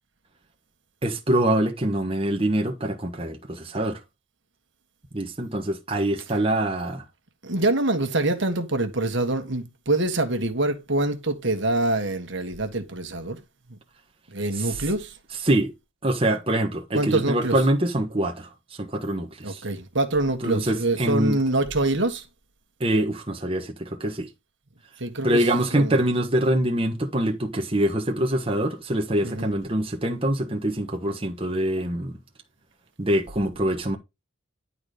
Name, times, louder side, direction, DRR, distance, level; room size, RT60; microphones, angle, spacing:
voice 1, 1.0-4.0 5.1-7.0 14.6-14.7 15.4-15.7 16.0-18.5 18.8-19.6 20.4-21.4 22.8-24.3 25.2-32.2 33.0-34.0, right 1 dB, 30° right, 1.3 m, -24 dB
voice 2, 7.4-13.4 13.7-13.8 14.3-15.2 16.9-17.5 19.4-22.3 25.0-26.0 29.2-29.5, right 2 dB, 65° right, 1.6 m, -25 dB
11.0 x 4.2 x 4.9 m
head